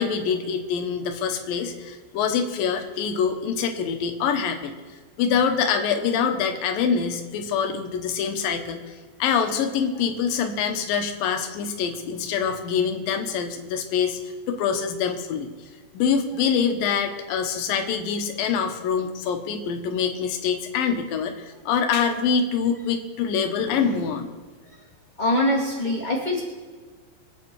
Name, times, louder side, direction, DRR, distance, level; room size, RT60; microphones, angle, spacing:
voice 1, 0.0-4.7 5.2-8.9 9.2-14.2 14.5-15.5 15.9-24.3, left 6 dB, 70° left, 5 dB, 2.2 m, -25 dB
voice 2, 25.2-26.4, left 1 dB, 50° left, -5 dB, 0.5 m, -23 dB
25.0 x 8.5 x 4.8 m, 1.5 s
omnidirectional pair, 5.4 m